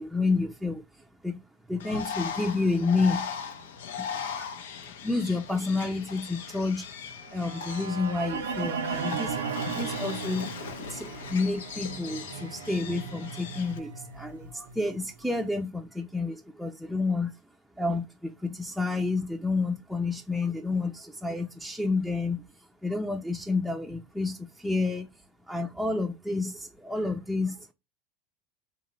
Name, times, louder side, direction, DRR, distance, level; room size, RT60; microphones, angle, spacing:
voice 1, 0.0-3.3 4.0-4.5 5.0-6.9 7.3-10.5 10.9-17.3 17.8-22.5 22.8-25.1 25.5-27.7, left 3 dB, ahead, 0.6 m, -30 dB
Bird, 1.8-13.8, left 7 dB, 80° left, 0.6 m, -39 dB
sound 1, 7.3-15.4, right 5 dB, 90° right, 0.6 m, -36 dB
3.8 x 2.9 x 3.2 m
hypercardioid pair, 95°, 0 cm